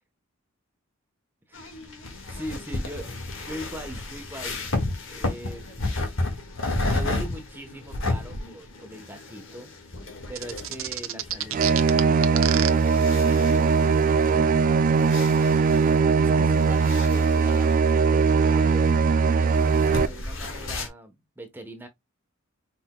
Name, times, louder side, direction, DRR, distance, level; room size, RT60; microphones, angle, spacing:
sound 1, 1.5-20.9, left 2 dB, 65° left, 1.7 m, -33 dB
voice 1, 1.5-1.8 2.1-3.1 3.4-5.7 6.9-9.7 10.3-12.8 15.7-21.9, right 1 dB, 10° right, 0.9 m, -41 dB
sound 2, 10.4-12.7, right 12 dB, 70° right, 0.7 m, -28 dB
sound 3, 11.5-20.1, right 5 dB, 40° right, 0.3 m, -20 dB
5.6 x 4.2 x 2.2 m
head